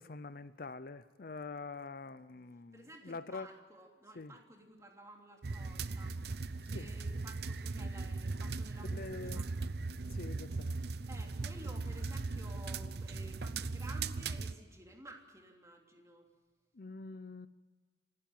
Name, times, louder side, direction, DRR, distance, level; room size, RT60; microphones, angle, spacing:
voice 1, 0.0-3.5 4.2-4.3 6.7-6.9 8.9-9.4 10.1-10.8 16.8-17.5, left 3 dB, 55° left, 14 dB, 0.6 m, -45 dB
voice 2, 2.7-9.5 11.1-16.3, right 1 dB, 20° right, 1 dB, 3.1 m, -54 dB
sound 1, 5.4-14.5, right 3 dB, 65° right, 0.7 m, -38 dB
27.0 x 12.5 x 8.9 m, 1.4 s
head